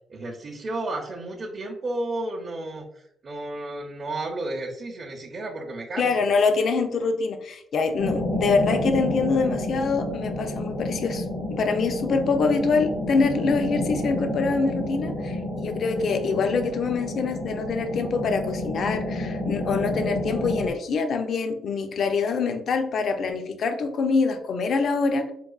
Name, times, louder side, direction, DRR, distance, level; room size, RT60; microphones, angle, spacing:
voice 1, 0.1-6.3, right 2 dB, 45° right, -2 dB, 0.5 m, -32 dB
voice 2, 6.0-11.2 11.5-25.3, left 4 dB, 60° left, 6 dB, 0.4 m, -25 dB
sound 1, 8.0-20.7, left 1 dB, 80° left, 0.9 m, -30 dB
4.7 x 2.3 x 2.3 m, 0.74 s
cardioid pair, 90°, 0 cm